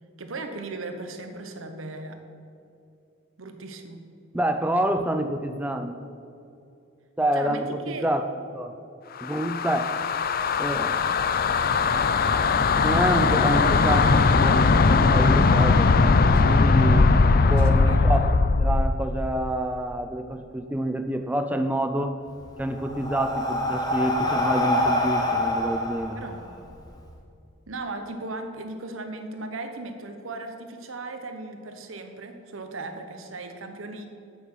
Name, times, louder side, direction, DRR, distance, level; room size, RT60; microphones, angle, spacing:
voice 1, 0.2-2.2 3.4-4.0 7.3-8.1 16.3-16.6 17.5-18.3 26.1-26.4 27.7-34.1, right 2 dB, 85° right, 6 dB, 1.1 m, -37 dB
voice 2, 4.3-6.0 7.2-8.2 8.5-8.7 9.2-9.9 10.6-11.0 12.7-15.9 16.3-22.2 22.6-26.2, right 1 dB, 10° right, 6 dB, 0.4 m, -27 dB
sound 1, 9.2-19.0, left 4 dB, 45° left, 0.4 m, -20 dB
Breathing, 22.3-27.0, left 1 dB, 20° left, 1.2 m, -26 dB
9.1 x 8.5 x 5.6 m, 2.6 s
head